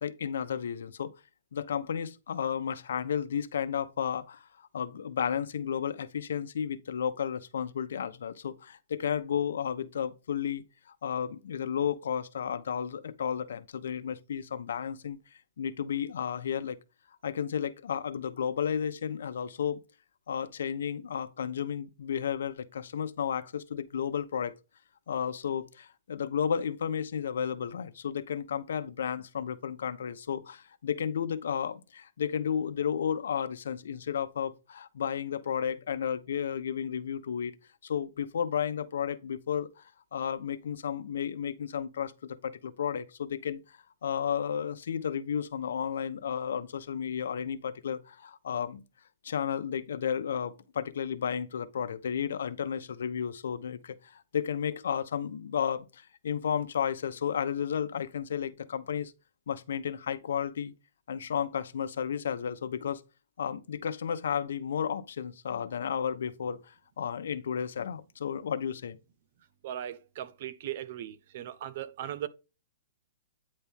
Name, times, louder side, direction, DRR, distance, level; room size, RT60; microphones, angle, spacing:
voice 1, 0.0-1.1 1.5-10.6 11.0-15.2 15.6-16.8 17.2-19.8 20.3-24.5 25.1-37.5 37.8-39.8 40.1-48.8 49.2-59.1 59.5-60.7 61.1-63.0 63.4-69.0, left 8 dB, 85° left, 0.9 m, -33 dB
voice 2, 69.6-72.3, right 11 dB, 50° right, 0.8 m, -38 dB
9.4 x 4.3 x 3.6 m
hypercardioid pair, 160°, 0 cm